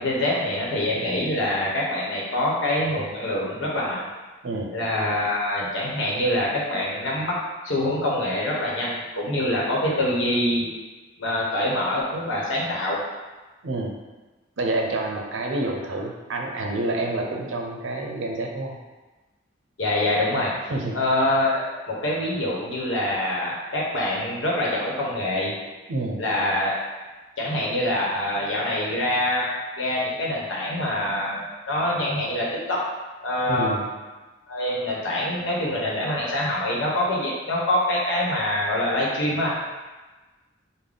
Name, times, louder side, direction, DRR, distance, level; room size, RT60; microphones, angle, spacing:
voice 1, 0.0-4.1 4.7-7.4 7.6-10.7 11.2-13.0 19.8-20.5 20.9-25.5 26.2-26.8 27.4-29.5 29.8-32.8 33.2-33.7 34.5-39.5, left 1 dB, 90° left, -4 dB, 0.9 m, -25 dB
voice 2, 4.4-4.8 13.6-14.0 14.6-18.8 20.7-21.0 25.9-26.2 33.5-33.9, right 2 dB, 90° right, 1 dB, 0.5 m, -28 dB
3.8 x 2.1 x 3.4 m, 1.2 s
head